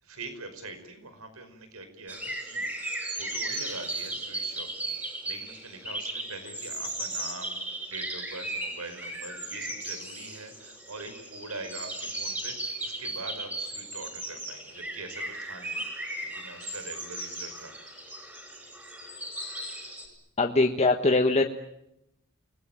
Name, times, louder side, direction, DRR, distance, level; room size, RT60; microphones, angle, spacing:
voice 1, 0.0-7.6 7.9-18.0, right 2 dB, 85° right, 9 dB, 5.1 m, -44 dB
sound 1, 2.1-20.1, right 1 dB, 10° right, 7.1 m, -36 dB
voice 2, 20.4-21.4, left 2 dB, 30° left, 4 dB, 1.3 m, -22 dB
29.5 x 20.5 x 9.2 m, 0.84 s
head